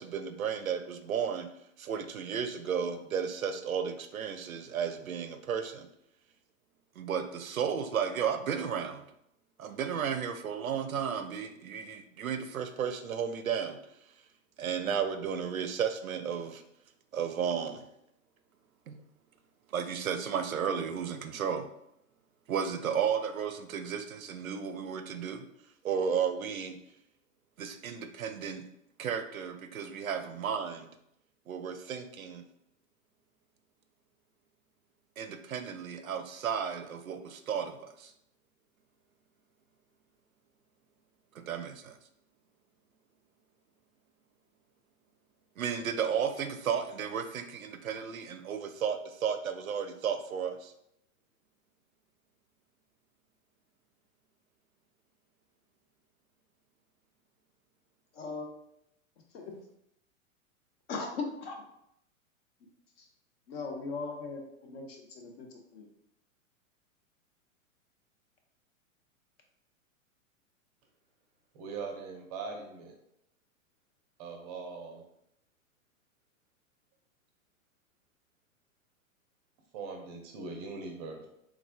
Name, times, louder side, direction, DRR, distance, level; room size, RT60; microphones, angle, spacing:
voice 1, 0.0-1.5 1.8-5.9 7.0-9.0 9.6-13.8 14.6-16.6 17.1-17.8 18.9-19.0 19.7-21.7 22.5-25.4 25.8-26.8 27.6-28.6 29.0-30.9 31.5-32.4 35.2-38.1 41.5-42.0 45.6-50.7, right 7 dB, 80° right, 8 dB, 0.5 m, -33 dB
voice 2, 58.1-58.5 59.3-59.6 60.9-61.6 63.0-63.1 63.5-65.9, left 4 dB, 45° left, 2 dB, 0.8 m, -39 dB
voice 3, 71.5-73.0 74.2-75.0 79.7-81.3, right 4 dB, 30° right, 2 dB, 0.5 m, -41 dB
3.5 x 3.2 x 2.2 m, 0.78 s
figure-of-eight pair, 105°, 41 cm